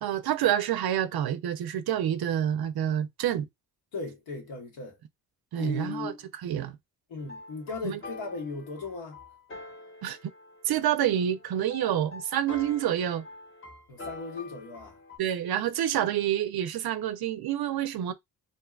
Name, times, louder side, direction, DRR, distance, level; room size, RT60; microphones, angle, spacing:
voice 1, 0.0-3.5 5.5-6.8 7.8-8.0 10.0-10.2 10.6-13.2 15.2-18.1, right 10 dB, 55° right, 0.5 m, -28 dB
voice 2, 3.9-5.0 5.6-6.2 7.1-9.2 13.9-15.0, left 4 dB, 80° left, 1.2 m, -37 dB
sound 1, 7.2-15.2, left 2 dB, 30° left, 0.9 m, -45 dB
2.7 x 2.2 x 2.3 m
supercardioid pair, 50°, 44 cm